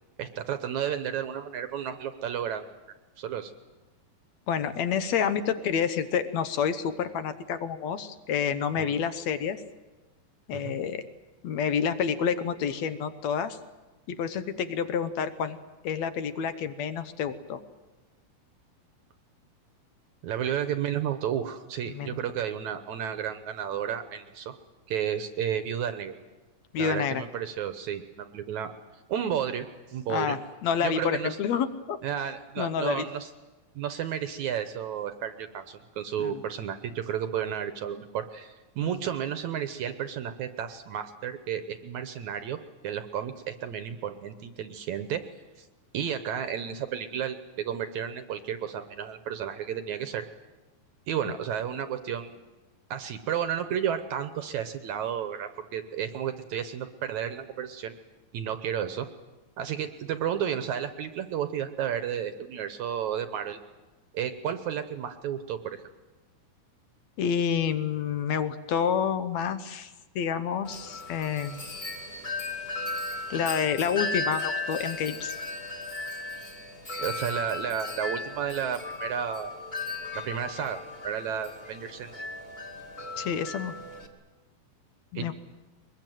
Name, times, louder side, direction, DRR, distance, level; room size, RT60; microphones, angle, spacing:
voice 1, 0.2-2.7 3.2-3.5 8.8-8.9 10.5-10.8 20.2-24.5 24.9-26.1 26.8-28.7 29.1-30.4 30.8-31.4 32.0-33.3 33.8-42.6 42.8-45.2 45.6-45.7 45.9-50.3 51.1-52.4 52.9-57.9 58.3-59.1 59.6-63.6 64.1-65.8 77.0-79.5 80.1-80.8 81.0-82.3 85.2-85.3, right 9 dB, 65° right, 9 dB, 2.0 m, -32 dB
voice 2, 4.5-9.6 10.5-11.1 11.4-13.6 14.1-15.6 15.8-17.6 21.9-22.2 26.7-27.2 30.1-32.0 32.6-33.0 36.2-36.4 38.8-38.9 67.2-71.6 73.3-75.3 83.2-83.7 85.1-85.3, left 7 dB, 70° left, 11 dB, 1.8 m, -29 dB
Wind chime, 70.7-84.1, left 3 dB, 20° left, 1.8 m, -36 dB
23.0 x 21.5 x 9.2 m, 1.1 s
omnidirectional pair, 4.2 m